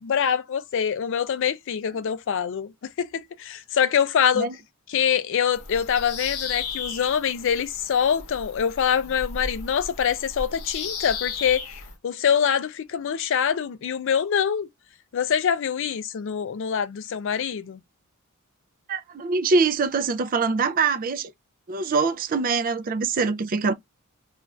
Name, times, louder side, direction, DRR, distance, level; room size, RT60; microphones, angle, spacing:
voice 1, 0.0-2.7 3.0-4.5 4.9-11.7 12.0-14.7 15.1-17.8, left 8 dB, 60° left, 0.4 m, -24 dB
Bird vocalization bird call bird song, 5.5-11.9, left 5 dB, 85° left, 0.8 m, -35 dB
voice 2, 18.9-21.3 21.7-23.7, right 4 dB, 40° right, 0.4 m, -24 dB
2.4 x 2.4 x 3.1 m
head